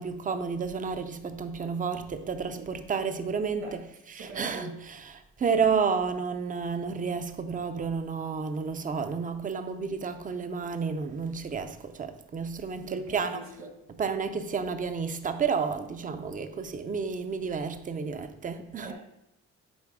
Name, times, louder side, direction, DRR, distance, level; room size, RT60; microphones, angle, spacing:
voice 1, 0.0-3.8 4.1-5.0 5.4-13.4 14.0-18.9, right 5 dB, 25° right, 0.5 m, -31 dB
voice 2, 4.2-4.7 12.8-13.7 18.8-18.9, right 2 dB, 65° right, 1.8 m, -42 dB
9.3 x 3.3 x 3.6 m
cardioid pair, 90°, 30 cm